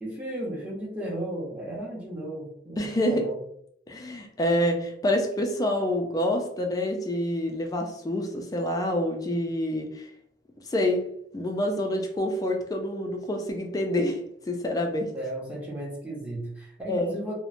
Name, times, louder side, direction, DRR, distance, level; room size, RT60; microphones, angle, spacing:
voice 1, 0.0-3.4 15.1-17.3, right 1 dB, 10° right, -5 dB, 0.7 m, -35 dB
voice 2, 2.8-3.3 3.9-10.0 10.7-11.1 11.3-14.2 14.5-15.1 16.9-17.2, left 1 dB, 20° left, 3 dB, 0.3 m, -27 dB
2.9 x 2.1 x 2.4 m, 0.69 s
head